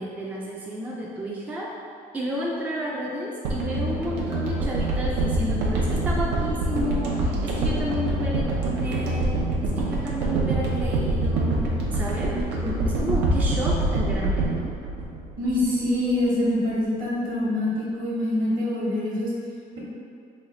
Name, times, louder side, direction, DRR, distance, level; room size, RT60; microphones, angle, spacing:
voice 1, 0.0-1.7 2.1-11.6 11.9-12.3 12.6-14.7, equal, 10° right, -4 dB, 0.3 m, -31 dB
sound 1, 3.4-15.8 16.1-16.2, right 2 dB, 85° right, 0.6 m, -25 dB
voice 2, 15.4-19.3, left 1 dB, 55° right, -5 dB, 1.1 m, -25 dB
3.2 x 2.3 x 3.8 m, 2.4 s
cardioid pair, 110°, 17 cm